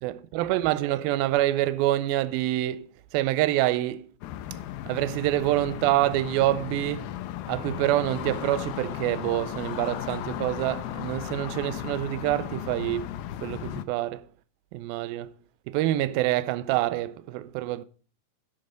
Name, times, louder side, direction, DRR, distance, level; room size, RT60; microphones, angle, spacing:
voice 1, 0.0-2.9 3.1-4.1 4.9-7.1 7.5-14.3 14.7-15.3 15.7-17.9, right 15 dB, 80° right, 2.4 m, -26 dB
sound 1, 4.2-13.8, left 12 dB, 80° left, 2.4 m, -35 dB
11.0 x 10.0 x 3.8 m
omnidirectional pair, 4.4 m